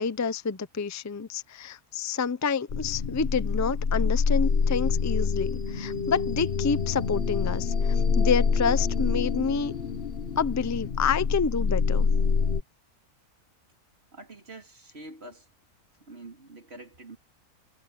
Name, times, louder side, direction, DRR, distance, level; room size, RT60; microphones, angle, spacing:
voice 1, 0.0-9.7 10.4-12.1, left 5 dB, 25° left, 0.3 m, -28 dB
sound 1, 2.7-12.6, left 5 dB, 45° left, 1.2 m, -26 dB
voice 2, 14.1-15.5 16.1-17.2, right 2 dB, 40° right, 3.6 m, -45 dB
omnidirectional pair, 1.6 m